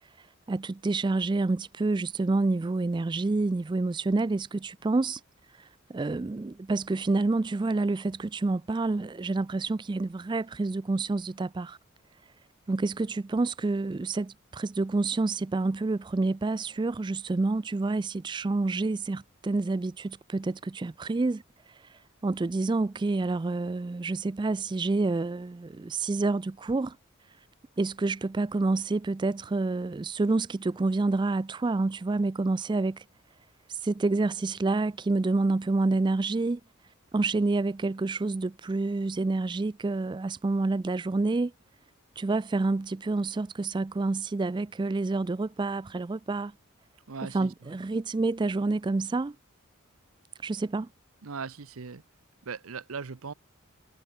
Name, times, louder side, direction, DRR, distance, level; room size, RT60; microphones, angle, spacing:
voice 1, 0.5-5.2 5.6-11.8 12.7-21.4 21.9-27.0 27.8-33.0 33.7-36.6 37.1-41.5 42.2-46.5 47.3-49.4 50.4-50.9, right 3 dB, 20° right, 0.3 m, -28 dB
voice 2, 47.1-47.8 51.2-52.0 52.4-53.3, right 5 dB, 80° right, 0.8 m, -39 dB
head